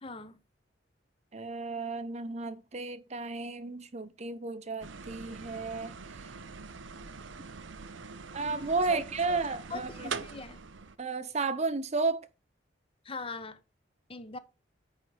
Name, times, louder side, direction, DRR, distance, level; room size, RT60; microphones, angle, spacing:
voice 1, 0.0-0.4 8.9-9.0 9.5-10.6 13.0-13.6 14.1-14.4, left 3 dB, 30° left, 0.8 m, -41 dB
voice 2, 1.3-6.3 8.3-10.1 11.0-12.3, right 3 dB, 35° right, 0.7 m, -33 dB
sound 1, 4.8-11.0, right 5 dB, 80° right, 0.7 m, -43 dB
9.5 x 3.6 x 6.4 m
head